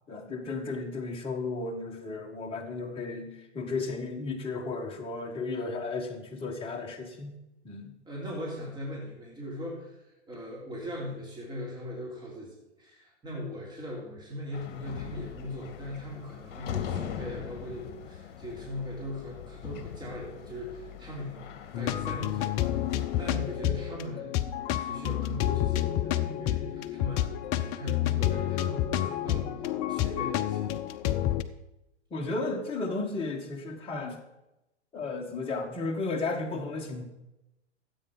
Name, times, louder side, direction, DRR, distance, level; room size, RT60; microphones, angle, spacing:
voice 1, 0.1-7.3 7.6-7.9 32.1-34.2 34.9-37.0, left 3 dB, 15° left, 0 dB, 1.6 m, -34 dB
voice 2, 8.0-10.0 10.3-21.5 21.7-24.3 24.6-29.5 29.9-30.7, left 1 dB, 10° right, -3 dB, 3.3 m, -39 dB
sound 1, 14.5-23.6, left 9 dB, 50° left, 1.5 m, -41 dB
sound 2, 21.7-31.4, left 12 dB, 30° left, 0.7 m, -29 dB
13.0 x 8.5 x 5.6 m, 0.93 s
hypercardioid pair, 110°, 36 cm